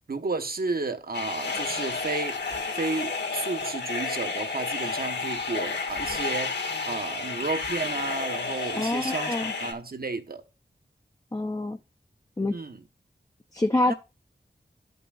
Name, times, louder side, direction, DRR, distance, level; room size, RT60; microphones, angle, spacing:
voice 1, 0.1-2.4 2.7-10.4 12.5-12.8 13.9-14.0, right 3 dB, 55° right, 1.1 m, -32 dB
sound 1, 1.1-9.7, left 4 dB, 75° left, 2.2 m, -31 dB
voice 2, 8.8-9.5 11.3-11.8 12.4-12.6 13.5-13.9, left 2 dB, 20° left, 0.6 m, -26 dB
12.5 x 5.4 x 2.4 m
wide cardioid pair, 85°, 18 cm